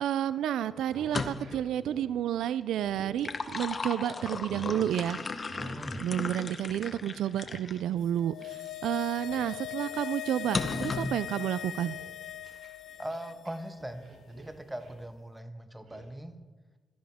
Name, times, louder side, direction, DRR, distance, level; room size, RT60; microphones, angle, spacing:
voice 1, 0.0-5.2 6.0-12.0, right 11 dB, 85° right, 16 dB, 0.3 m, -31 dB
sound 1, 0.7-3.9 4.2-4.9 5.5-6.1 6.3-8.8 9.1-9.5 9.7-10.0 10.4-11.0 11.4-13.5 13.8-15.0 15.9-16.1, right 2 dB, 65° right, 3.1 m, -50 dB
sound 2, 1.0-1.7 2.9-7.8 8.4-8.5 10.5-11.2, left 4 dB, 40° left, 1.0 m, -35 dB
voice 2, 5.6-6.0 13.0-16.3, right 1 dB, 10° right, 8 dB, 1.4 m, -40 dB
sound 3, 8.1-13.5 13.8-13.9, left 12 dB, 75° left, 0.3 m, -40 dB
16.5 x 13.5 x 3.6 m, 1.4 s
cardioid pair, 80°, 0 cm